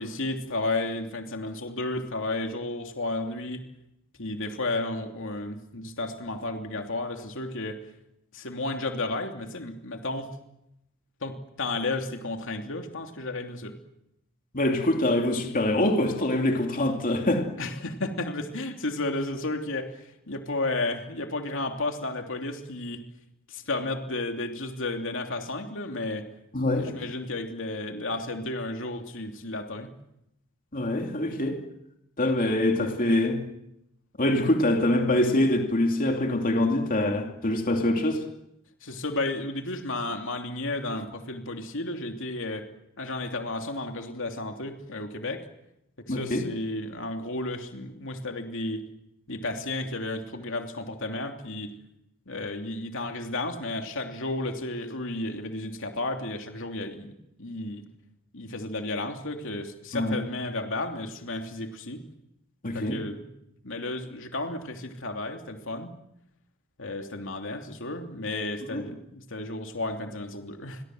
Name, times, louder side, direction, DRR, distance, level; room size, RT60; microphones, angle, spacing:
voice 1, 0.0-3.6 4.2-7.8 8.3-10.3 11.2-13.8 17.6-23.0 23.5-26.3 26.7-29.9 38.8-42.7 43.0-45.4 46.1-48.9 49.3-51.7 52.3-57.8 58.3-62.0 62.7-63.3 63.6-65.9 66.8-70.8, left 2 dB, 60° left, 4 dB, 3.0 m, -33 dB
voice 2, 14.5-17.5 26.5-26.9 30.7-31.6 32.2-33.4 34.2-38.2 46.1-46.4 59.9-60.2 62.6-63.0 68.7-68.9, left 1 dB, 40° left, 3 dB, 2.9 m, -24 dB
29.0 x 23.5 x 7.9 m, 0.84 s
head